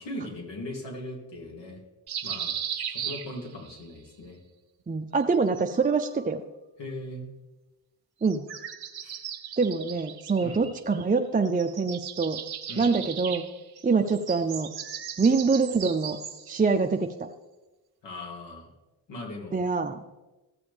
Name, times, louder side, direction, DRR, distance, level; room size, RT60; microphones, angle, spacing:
voice 1, 0.0-1.8 2.2-2.5 2.9-4.4 6.8-7.3 9.0-9.2 10.4-10.6 12.7-12.9 18.0-18.7 19.1-19.6, left 1 dB, 65° left, -1 dB, 2.8 m, -39 dB
sound 1, 2.1-3.8 5.2-6.3 8.2-11.2 11.5-16.6, right 9 dB, 55° right, 1.0 m, -37 dB
voice 2, 4.9-6.4 8.2-8.4 9.6-12.4 12.8-13.4 13.8-14.7 15.2-16.2 16.5-17.1 19.5-20.0, right 4 dB, 20° right, 6 dB, 0.5 m, -25 dB
14.5 x 6.9 x 3.4 m, 1.1 s
supercardioid pair, 50°, 45 cm